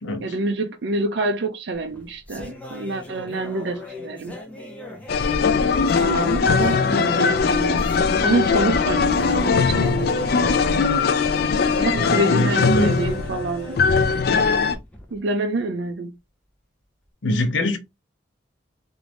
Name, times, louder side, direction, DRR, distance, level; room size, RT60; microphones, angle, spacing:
voice 1, 0.2-4.4 6.0-7.9 8.2-10.9 11.8-13.8 15.1-16.1, right 2 dB, 60° right, 0.4 m, -27 dB
sound 1, 1.7-15.2, left 2 dB, 5° left, 0.7 m, -38 dB
sound 2, 5.1-14.8, left 5 dB, 50° left, 0.4 m, -20 dB
voice 2, 11.9-13.0 17.2-17.8, left 1 dB, 75° left, 0.7 m, -23 dB
3.0 x 2.6 x 3.2 m
head